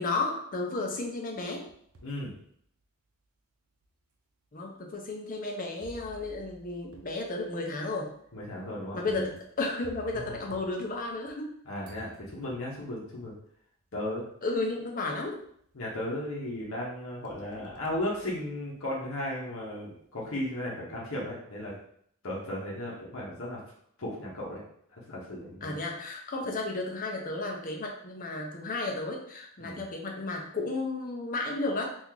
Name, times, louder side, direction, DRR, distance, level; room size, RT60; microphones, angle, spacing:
voice 1, 0.0-1.7 4.5-8.1 8.9-11.5 14.4-15.4 25.6-31.9, left 2 dB, 40° left, 1 dB, 0.6 m, -33 dB
sound 1, 1.3-2.2 2.8-2.9 3.8-3.9 5.8-11.5 11.8-12.9 14.0-14.1 14.6-15.1 15.4-16.2 16.6-19.0, right 1 dB, 70° right, 0.6 m, -54 dB
voice 2, 2.0-2.3 8.3-9.3 10.1-10.2 11.7-13.3 13.9-14.3 15.7-21.8 22.2-23.6 24.0-24.6 24.9-25.8 29.6-29.9, left 1 dB, 65° left, -5 dB, 0.9 m, -35 dB
2.9 x 2.6 x 3.7 m, 0.66 s
head